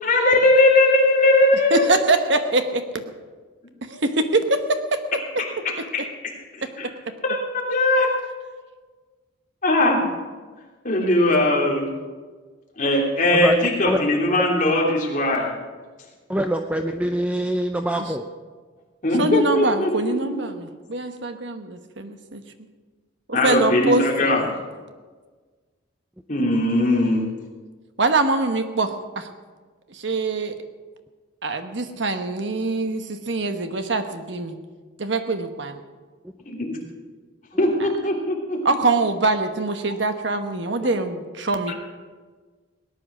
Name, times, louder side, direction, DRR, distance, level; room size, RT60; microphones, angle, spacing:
voice 1, 0.0-1.9 6.8-6.9 7.3-7.4 7.7-8.1 9.6-10.0 10.8-11.8 12.8-15.5 19.0-20.4 23.3-24.4 26.3-27.2 36.5-36.8 37.6-38.6 41.7-41.8, left 1 dB, 40° left, -2 dB, 3.0 m, -19 dB
voice 2, 1.7-3.0 3.9-5.0 18.0-18.1 19.2-22.4 23.3-24.5 28.0-29.3 29.9-30.5 31.4-34.6 35.0-35.8 38.6-41.7, right 2 dB, 65° right, 8 dB, 1.2 m, -24 dB
voice 3, 16.3-18.2, right 1 dB, 5° right, 5 dB, 0.5 m, -24 dB
18.0 x 10.5 x 6.2 m, 1.4 s
head